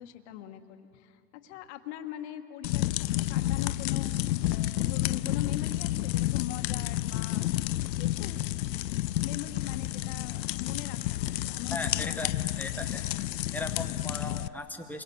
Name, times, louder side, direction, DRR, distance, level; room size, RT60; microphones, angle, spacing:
voice 1, 0.0-7.6 8.0-8.4 9.2-12.5, left 11 dB, 45° left, 7 dB, 1.4 m, -42 dB
sound 1, 2.6-14.5, left 15 dB, 80° left, 0.6 m, -30 dB
voice 2, 11.7-12.3 12.6-13.0 13.5-15.0, left 2 dB, 5° left, 5 dB, 0.7 m, -37 dB
26.5 x 22.5 x 7.0 m, 2.5 s
hypercardioid pair, 140°, 49 cm